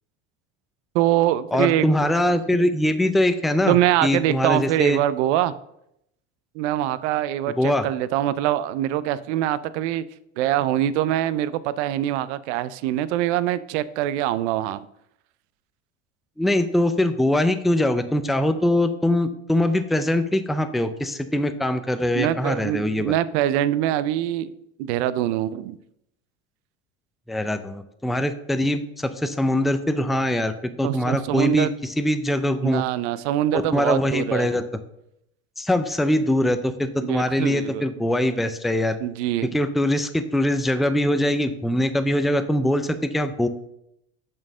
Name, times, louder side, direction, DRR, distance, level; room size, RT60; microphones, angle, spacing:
voice 1, 0.9-2.4 3.7-5.5 6.5-10.0 10.4-14.8 22.1-24.5 24.8-25.8 30.8-31.7 32.6-34.5 37.0-37.9 39.0-39.5, right 12 dB, 75° right, 16 dB, 0.6 m, -24 dB
voice 2, 1.5-5.0 7.6-7.9 16.4-23.1 27.3-32.8 33.5-34.6 35.6-39.0 39.4-43.5, left 1 dB, ahead, 10 dB, 0.3 m, -22 dB
6.2 x 4.5 x 6.1 m, 0.79 s
supercardioid pair, 105°, 34 cm